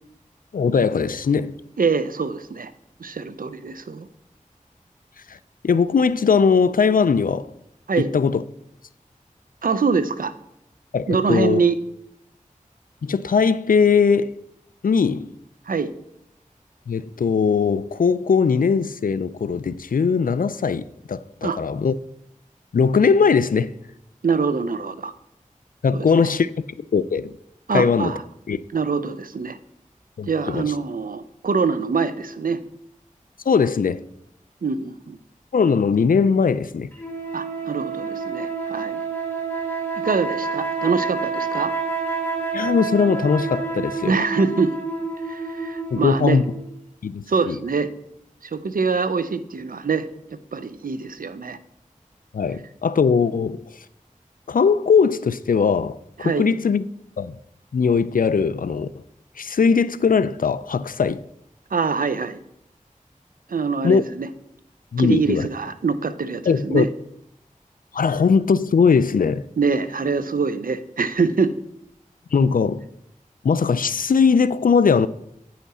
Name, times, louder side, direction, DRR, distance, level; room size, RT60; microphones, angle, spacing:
voice 1, 0.5-1.6 5.6-7.5 8.0-8.4 10.9-11.6 13.0-14.3 14.8-15.3 16.9-21.9 22.7-23.7 25.8-26.5 26.9-27.3 27.7-28.1 28.5-28.6 30.2-30.7 33.5-34.0 35.5-36.9 42.5-44.2 45.9-46.4 47.0-47.6 52.3-53.7 54.5-56.9 57.2-57.4 57.7-59.0 59.4-61.2 63.8-64.0 64.9-65.5 66.5-66.9 67.9-69.4 72.3-72.8 73.4-75.1, left 5 dB, 85° left, 0.4 m, -20 dB
voice 2, 1.8-2.7 3.0-4.1 7.9-8.1 9.6-10.3 11.1-11.8 15.7-15.9 21.4-21.6 24.2-25.1 25.9-26.3 27.7-28.2 28.7-29.6 30.2-32.6 34.6-35.2 37.3-39.0 40.0-41.7 44.0-44.8 45.2-46.4 47.3-47.9 48.4-50.1 50.5-51.6 56.2-56.5 61.7-62.4 63.5-64.3 65.0-66.9 69.6-71.5, right 5 dB, 85° right, 0.6 m, -24 dB
sound 1, 37.0-46.7, right 4 dB, 15° left, 2.0 m, -28 dB
9.3 x 5.7 x 4.2 m
wide cardioid pair, 40°, 14 cm